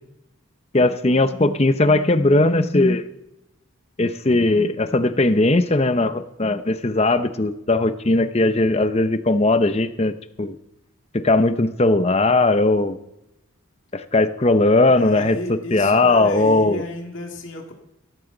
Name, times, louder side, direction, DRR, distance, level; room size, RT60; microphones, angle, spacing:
voice 1, 0.7-3.0 4.0-10.6 11.1-13.0 13.9-15.4 15.7-16.8, left 2 dB, 30° left, 11 dB, 0.7 m, -18 dB
voice 2, 14.8-17.7, left 1 dB, 65° left, 1 dB, 2.2 m, -31 dB
17.0 x 14.0 x 3.9 m, 0.86 s
head